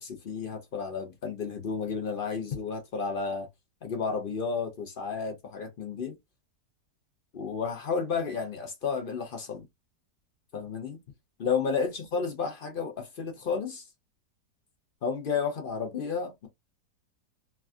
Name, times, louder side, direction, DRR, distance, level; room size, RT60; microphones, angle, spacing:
voice 1, 0.0-3.5 3.8-6.2 7.3-9.6 10.5-11.0 11.4-13.8 15.0-16.5, left 5 dB, 55° left, 0.5 m, -32 dB
3.3 x 2.4 x 2.3 m
omnidirectional pair, 1.8 m